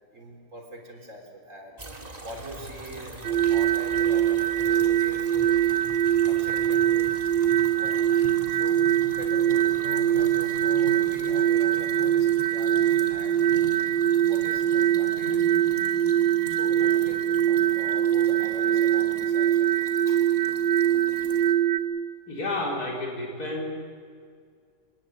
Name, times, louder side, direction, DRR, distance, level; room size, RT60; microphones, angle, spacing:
voice 1, 0.1-5.8 6.2-6.9 7.7-8.0 8.5-13.7 14.2-16.2 16.5-19.7 20.0-20.3, right 1 dB, 40° right, 2 dB, 4.3 m, -43 dB
sound 1, 1.8-21.5, right 1 dB, 20° right, 2.2 m, -43 dB
sound 2, 3.2-21.8, right 11 dB, 80° right, 1.6 m, -23 dB
voice 2, 22.3-23.7, left 2 dB, 55° left, -2 dB, 5.0 m, -30 dB
25.5 x 20.0 x 8.5 m, 2.1 s
omnidirectional pair, 1.9 m